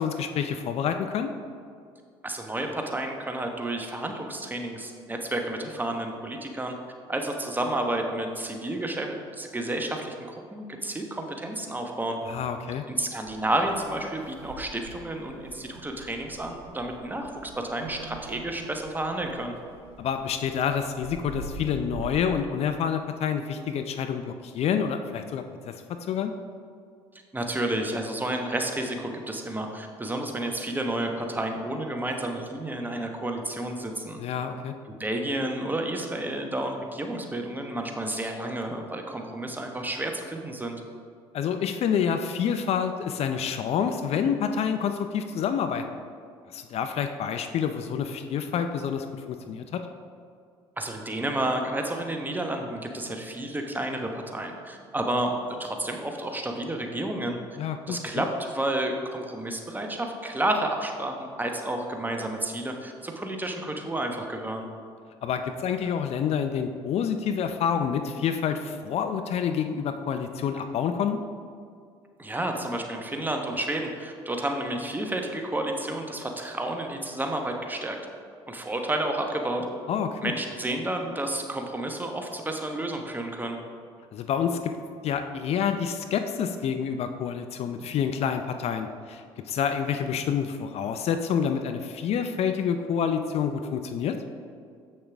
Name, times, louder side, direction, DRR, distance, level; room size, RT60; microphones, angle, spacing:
voice 1, 0.0-1.3 12.2-12.8 20.0-26.3 34.2-34.7 41.3-45.8 46.5-49.8 57.6-58.2 65.2-71.2 79.9-80.3 84.1-84.8 85.0-94.2, left 7 dB, 50° left, 7 dB, 0.5 m, -28 dB
voice 2, 2.2-6.8 7.1-12.2 12.9-19.6 27.3-34.2 35.0-40.8 50.8-57.4 57.9-64.7 72.2-78.0 78.5-79.7 80.2-83.6, right 1 dB, 15° right, 3 dB, 1.1 m, -31 dB
sound 1, 13.2-22.3, right 2 dB, 90° right, 0.7 m, -44 dB
7.6 x 6.5 x 3.5 m, 2.2 s
hypercardioid pair, 60°, 13 cm